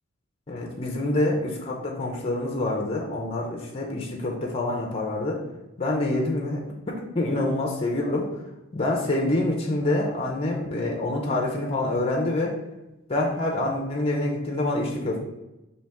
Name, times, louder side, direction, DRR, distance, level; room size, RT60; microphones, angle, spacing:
voice 1, 0.5-5.4 5.8-8.3 8.7-12.6 13.1-15.2, left 2 dB, 25° left, -1 dB, 0.5 m, -26 dB
4.2 x 2.8 x 3.4 m, 0.98 s
head